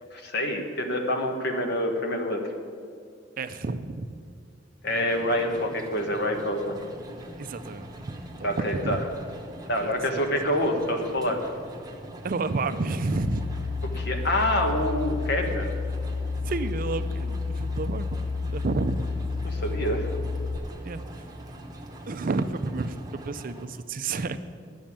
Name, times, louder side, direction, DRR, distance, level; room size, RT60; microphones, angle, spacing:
voice 1, 0.1-2.5 4.8-6.8 8.4-9.0 9.6-11.4 13.9-15.7 19.4-20.1, left 1 dB, 60° left, 3 dB, 1.4 m, -27 dB
voice 2, 3.4-4.1 7.4-9.0 9.8-9.9 12.2-13.4 16.4-18.2 18.5-19.0 20.8-21.0 22.1-23.0 23.2-24.4, right 3 dB, 45° right, 11 dB, 0.5 m, -30 dB
sound 1, 4.8-23.7, right 1 dB, 20° right, 1.0 m, -43 dB
sound 2, 13.1-20.6, left 4 dB, 35° left, 0.6 m, -30 dB
10.5 x 6.4 x 8.6 m, 2.3 s
head